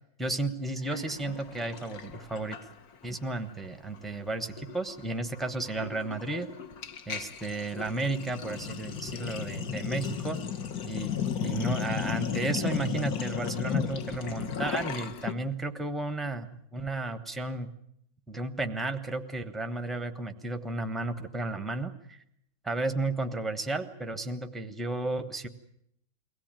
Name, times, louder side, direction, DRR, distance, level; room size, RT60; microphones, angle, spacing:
voice 1, 0.0-2.6 3.0-6.5 7.1-10.4 10.8-11.1 11.4-17.7 18.3-22.2 22.6-25.5, right 2 dB, ahead, 7 dB, 0.6 m, -33 dB
Sink (filling or washing), 0.9-3.1 3.4-3.7 3.9-15.3, left 7 dB, 55° left, 1.4 m, -35 dB
23.5 x 17.5 x 9.0 m, 0.74 s
omnidirectional pair, 2.2 m